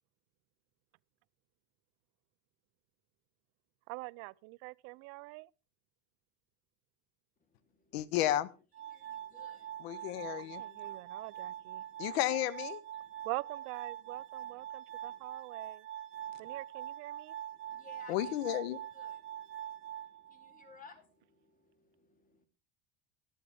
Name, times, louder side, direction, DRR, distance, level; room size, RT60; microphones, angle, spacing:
voice 1, 3.9-5.5 10.6-11.8 13.2-15.8 16.4-17.3, right 25 dB, 65° right, 0.5 m, -44 dB
voice 2, 7.4-8.3 8.9-10.2 10.7-12.1 13.0-13.3 14.0-14.7 15.0-15.2 16.1-16.6 17.5-18.3 18.9-22.5, left 5 dB, 25° left, 2.7 m, -61 dB
voice 3, 7.9-8.5 9.8-10.6 12.0-12.8 18.1-18.8, left 13 dB, 85° left, 0.9 m, -32 dB
Glass, 8.7-20.7, right 11 dB, 40° right, 2.2 m, -44 dB
13.5 x 11.5 x 3.6 m
supercardioid pair, 115°, 30 cm